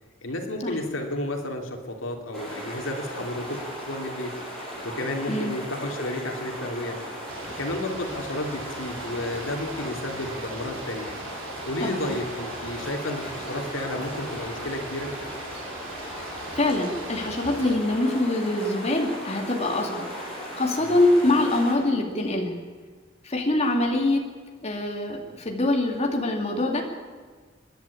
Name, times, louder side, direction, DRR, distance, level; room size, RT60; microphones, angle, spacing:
voice 1, 0.2-4.3 4.8-7.0 7.6-11.1 11.6-15.1 20.8-21.0, left 1 dB, 85° left, 3 dB, 2.9 m, -32 dB
sound 1, 2.3-21.7, equal, 5° left, 7.3 m, -37 dB
sound 2, 7.3-17.7, right 3 dB, 90° right, 3.0 m, -42 dB
voice 2, 16.5-20.1 20.6-22.5 23.2-24.3 24.6-26.8, left 2 dB, 35° left, 2 dB, 2.4 m, -24 dB
29.5 x 11.0 x 8.4 m, 1.5 s
head